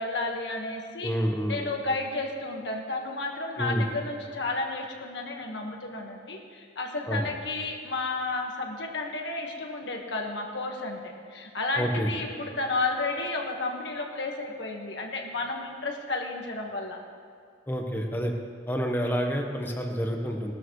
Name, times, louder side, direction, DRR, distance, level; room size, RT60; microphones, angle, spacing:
voice 1, 0.0-1.1 1.5-17.0, left 2 dB, 65° left, 1 dB, 1.6 m, -32 dB
voice 2, 1.0-1.6 3.6-3.9 7.1-7.3 11.8-12.1 17.7-18.3 18.7-20.5, equal, 10° left, 2 dB, 1.2 m, -28 dB
18.5 x 13.0 x 3.2 m, 2.3 s
head